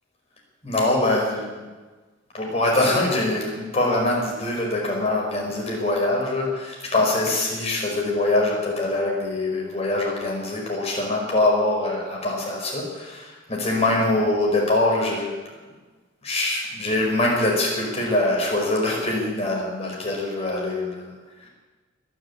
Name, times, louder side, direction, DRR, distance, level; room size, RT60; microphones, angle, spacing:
voice 1, 0.6-1.6 2.3-15.3 16.2-21.1, left 2 dB, 30° left, -2 dB, 5.1 m, -23 dB
21.5 x 7.7 x 8.8 m, 1.3 s
head